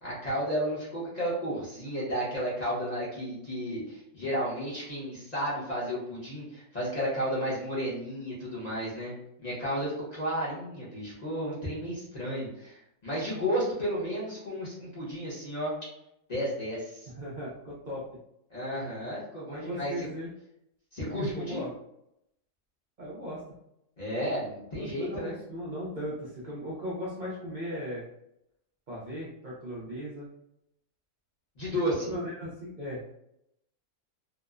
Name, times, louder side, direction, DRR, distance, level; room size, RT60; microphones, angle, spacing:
voice 1, 0.0-9.1 9.4-15.7 16.3-17.1 18.5-20.1 20.9-21.7 24.0-25.4 31.6-32.1, equal, 35° left, -8 dB, 0.7 m, -32 dB
voice 2, 17.2-18.1 19.5-20.3 21.1-21.7 23.0-23.4 24.8-28.0 28.9-30.3 32.0-33.1, equal, 70° right, -6 dB, 0.4 m, -37 dB
2.9 x 2.0 x 2.3 m, 0.80 s
omnidirectional pair, 1.6 m